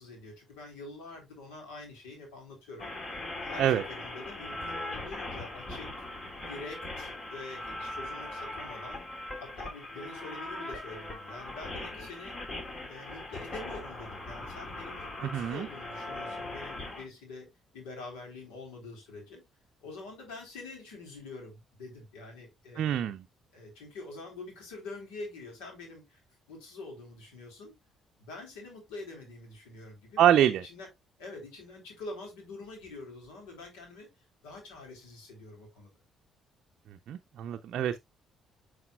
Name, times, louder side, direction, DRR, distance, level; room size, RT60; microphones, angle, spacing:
voice 1, 0.0-2.9 3.4-5.9 6.5-9.0 9.4-12.4 12.9-19.4 19.8-23.0 23.5-26.2 26.5-27.7 28.2-30.9 31.2-34.1 34.4-35.9, left 3 dB, 75° left, 3.6 m, -45 dB
sound 1, 2.8-17.1, left 2 dB, 40° left, 2.8 m, -40 dB
voice 2, 15.2-15.7 22.8-23.2 30.2-30.6 37.1-38.0, right 10 dB, 65° right, 0.5 m, -25 dB
9.6 x 4.8 x 2.3 m
hypercardioid pair, 50°, 0 cm